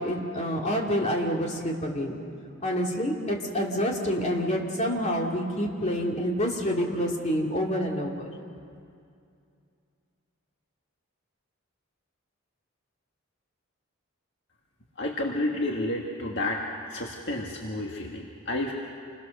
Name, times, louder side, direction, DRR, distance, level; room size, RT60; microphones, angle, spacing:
voice 1, 0.0-2.2 2.6-8.3, equal, 30° left, -1 dB, 2.8 m, -27 dB
voice 2, 15.0-16.6 16.9-18.7, left 1 dB, 55° left, 0 dB, 1.7 m, -30 dB
28.0 x 21.5 x 6.7 m, 2.4 s
head